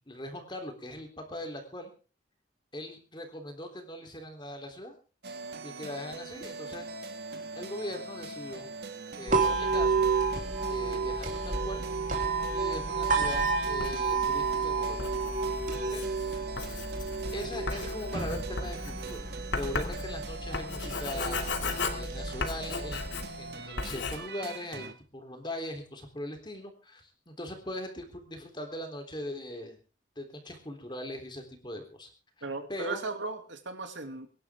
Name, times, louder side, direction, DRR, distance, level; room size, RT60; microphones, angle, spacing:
voice 1, 0.0-1.9 2.7-5.0 5.6-6.9 7.6-8.7 9.2-10.1 10.7-11.9 12.5-15.1 15.9-16.4 17.3-21.4 21.9-29.8 30.2-32.1 32.7-33.0, left 1 dB, 25° left, 4 dB, 3.6 m, -40 dB
sound 1, 5.2-24.9, right 3 dB, 60° right, 1.9 m, -42 dB
sound 2, 9.3-23.3, right 4 dB, 45° right, 3.4 m, -31 dB
Writing, 13.2-23.5 23.8-24.2, left 3 dB, 80° left, 2.5 m, -37 dB
voice 2, 32.4-34.3, right 3 dB, 85° right, 6 dB, 2.7 m, -37 dB
24.5 x 11.5 x 3.7 m, 0.36 s
head